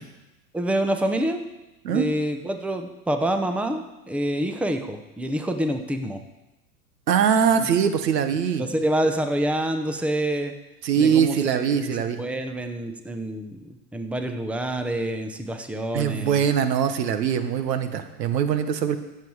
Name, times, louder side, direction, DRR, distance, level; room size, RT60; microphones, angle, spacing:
voice 1, 0.5-1.5 1.9-6.2 7.6-7.7 8.6-10.5 11.0-16.4, right 1 dB, 5° right, 7 dB, 0.8 m, -27 dB
voice 2, 7.1-8.6 10.8-12.2 15.9-19.0, right 7 dB, 90° right, 10 dB, 1.2 m, -22 dB
16.0 x 7.4 x 4.8 m, 1.0 s
hypercardioid pair, 115°, 48 cm